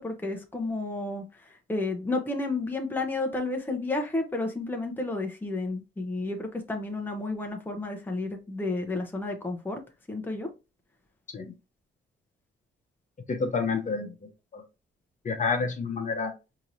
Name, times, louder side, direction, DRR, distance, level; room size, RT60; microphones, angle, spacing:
voice 1, 0.0-9.8 10.1-10.5, left 2 dB, 10° left, 0.8 m, -31 dB
voice 2, 13.3-14.1 14.5-14.6 15.2-16.3, left 4 dB, 40° left, 0.9 m, -28 dB
4.6 x 2.9 x 2.6 m
cardioid pair, 90°, 20 cm